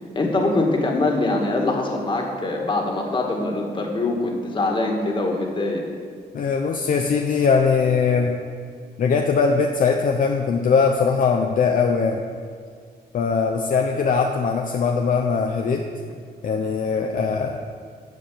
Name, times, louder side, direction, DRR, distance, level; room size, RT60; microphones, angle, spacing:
voice 1, 0.2-5.8, left 2 dB, 30° left, 1 dB, 2.0 m, -23 dB
voice 2, 6.3-8.3 9.0-12.2 13.1-15.8 16.4-17.6, left 5 dB, 50° left, 2 dB, 0.8 m, -21 dB
13.0 x 5.1 x 8.5 m, 2.1 s
cardioid pair, 140°, 17 cm